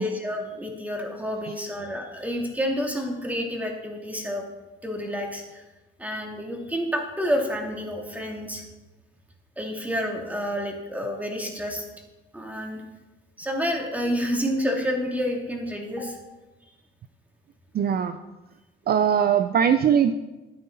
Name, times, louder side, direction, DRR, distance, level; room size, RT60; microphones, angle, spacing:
voice 1, 0.0-4.4 4.8-5.6 6.0-8.6 9.6-11.8 12.3-12.8 13.4-16.2, equal, 5° right, 0 dB, 2.9 m, -29 dB
voice 2, 17.7-18.2 18.9-20.1, right 8 dB, 50° right, 10 dB, 0.5 m, -20 dB
13.0 x 9.3 x 4.1 m, 1.1 s
cardioid pair, 90°, 20 cm